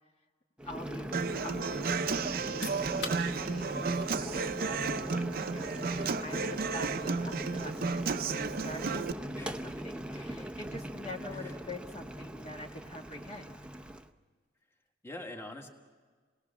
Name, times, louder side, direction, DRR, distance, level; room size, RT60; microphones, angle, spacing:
voice 1, 0.6-1.1 1.4-13.6, left 1 dB, 35° left, 0 dB, 1.5 m, -45 dB
Boiling, 0.6-14.1, right 1 dB, 5° right, 0.7 m, -40 dB
Human voice / Acoustic guitar, 1.1-9.1, right 4 dB, 50° right, 0.6 m, -33 dB
voice 2, 5.9-6.2 7.4-7.6 9.3-10.5 11.4-11.6 15.0-15.7, left 1 dB, 15° left, 2 dB, 1.7 m, -47 dB
sound 1, 15.0-15.1, left 4 dB, 75° left, 4.1 m, -52 dB
28.0 x 19.0 x 7.2 m, 1.5 s
head